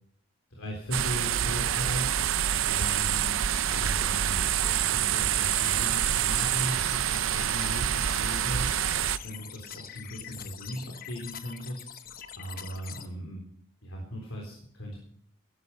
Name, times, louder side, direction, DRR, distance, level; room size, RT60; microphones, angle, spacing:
voice 1, 0.5-3.4 3.7-8.9 9.2-12.1 12.4-13.4 13.8-15.0, equal, 85° left, -1 dB, 3.7 m, -38 dB
sound 1, 0.9-9.2, right 10 dB, 80° right, 0.6 m, -27 dB
sound 2, 5.3-13.1, left 8 dB, 45° left, 1.0 m, -44 dB
16.0 x 12.0 x 5.6 m, 0.62 s
head